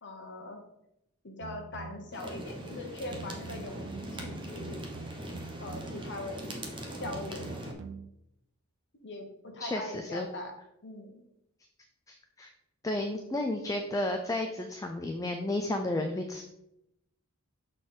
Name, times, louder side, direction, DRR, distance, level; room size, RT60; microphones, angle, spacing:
voice 1, 0.0-0.6 1.2-3.8 4.1-4.8 5.6-6.5 7.0-7.5 9.0-10.5 10.8-11.2, left 2 dB, 55° left, 3 dB, 1.1 m, -41 dB
sound 1, 1.4-2.2 3.1-6.1 7.0-8.1, right 4 dB, 65° right, 0.4 m, -45 dB
sound 2, 2.1-7.7, right 1 dB, 20° right, 0.9 m, -41 dB
voice 2, 9.6-10.3 12.1-12.5 12.8-16.4, left 1 dB, 15° left, 5 dB, 0.4 m, -32 dB
6.6 x 4.0 x 3.8 m, 0.84 s
head